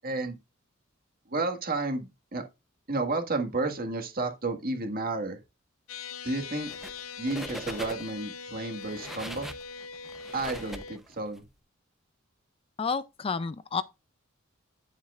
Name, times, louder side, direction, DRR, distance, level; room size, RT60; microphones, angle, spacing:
voice 1, 0.0-0.4 1.3-2.4 2.9-5.4 6.2-6.7 7.2-9.5 10.3-11.4, right 2 dB, 45° right, 1.7 m, -31 dB
sound 1, 5.9-11.0, left 5 dB, 85° left, 0.7 m, -42 dB
sound 2, 6.6-7.0 7.3-8.2 8.7-11.4, equal, ahead, 0.7 m, -41 dB
voice 2, 12.8-13.8, left 5 dB, 25° left, 0.4 m, -30 dB
9.5 x 7.3 x 2.4 m
head